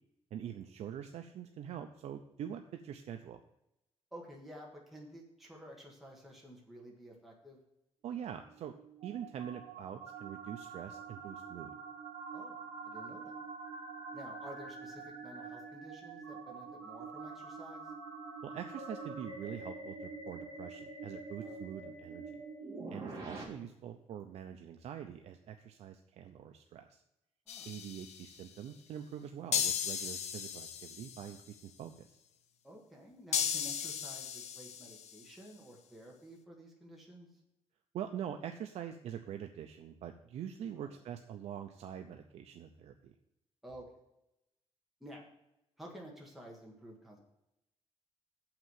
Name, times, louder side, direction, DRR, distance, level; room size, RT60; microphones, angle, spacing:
voice 1, 0.3-3.4 8.0-8.8 9.0-11.8 18.4-22.4 22.9-27.0 27.6-32.2 37.9-43.1, right 9 dB, 75° right, 6 dB, 0.6 m, -44 dB
voice 2, 4.1-7.6 12.3-12.6 12.8-13.3 14.1-17.9 21.4-21.6 27.5-27.7 32.6-37.3 40.7-40.9 43.6-43.9 45.0-45.2 45.8-47.2, equal, ahead, -2 dB, 1.7 m, -52 dB
sound 1, 8.4-23.4, right 4 dB, 25° right, 3.2 m, -46 dB
sound 2, 27.5-28.4 29.5-31.4 33.3-35.2, left 8 dB, 90° left, 0.8 m, -36 dB
7.4 x 5.9 x 7.6 m, 0.87 s
wide cardioid pair, 170°, 11 cm